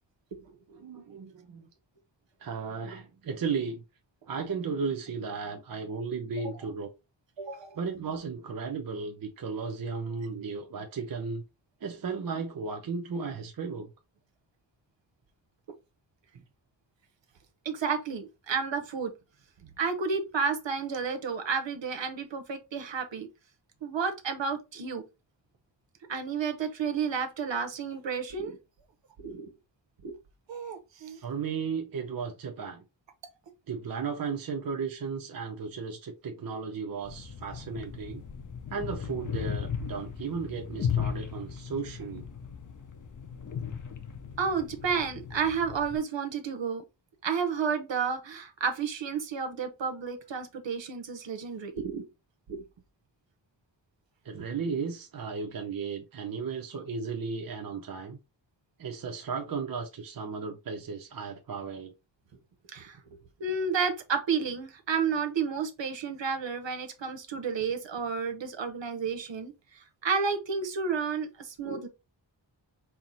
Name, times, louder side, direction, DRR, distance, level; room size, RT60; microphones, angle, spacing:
voice 1, 0.8-1.7 2.4-3.8 4.3-6.9 7.8-11.4 11.8-13.9 31.2-32.8 33.7-38.2 38.7-42.3 54.2-58.2 58.8-61.9, right 5 dB, 50° right, 0.6 m, -35 dB
voice 2, 7.4-7.8 17.6-19.1 19.8-23.3 23.8-25.0 26.1-28.6 29.2-29.5 30.0-30.2 30.5-31.2 44.4-46.8 47.2-52.1 52.5-52.6 54.3-54.4 62.7-63.0 63.4-71.9, right 5 dB, 75° right, 0.9 m, -31 dB
sound 1, 37.0-46.0, left 7 dB, 45° left, 0.6 m, -36 dB
4.5 x 2.0 x 4.0 m
wide cardioid pair, 85°, 44 cm